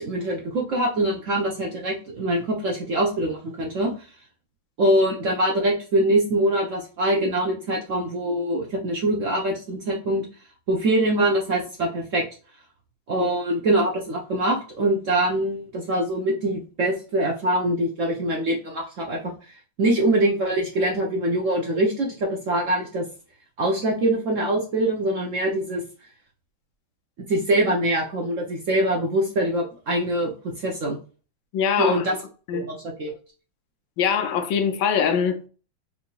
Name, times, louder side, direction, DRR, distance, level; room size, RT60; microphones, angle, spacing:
voice 1, 0.0-3.9 4.8-10.3 10.7-12.2 13.1-23.1 23.6-25.8 27.3-31.0 31.8-32.2 32.5-33.1, right 1 dB, 65° right, 0.7 m, -24 dB
voice 2, 31.5-32.1 32.5-32.7 34.0-35.5, left 7 dB, 75° left, 1.3 m, -23 dB
4.9 x 2.7 x 2.3 m
omnidirectional pair, 2.3 m